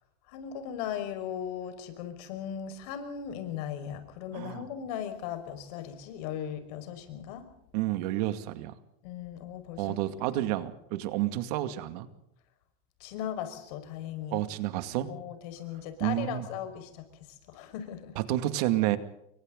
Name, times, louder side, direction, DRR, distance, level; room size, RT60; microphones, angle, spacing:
voice 1, 0.3-7.5 9.0-10.0 13.0-14.4 15.1-17.0 17.5-18.1, left 9 dB, 70° left, 8 dB, 5.3 m, -38 dB
voice 2, 7.7-8.7 9.8-12.1 14.3-15.1 16.0-16.4 18.2-19.0, right 14 dB, 75° right, 11 dB, 2.3 m, -30 dB
29.0 x 24.0 x 4.0 m, 0.81 s
supercardioid pair, 145°, 20 cm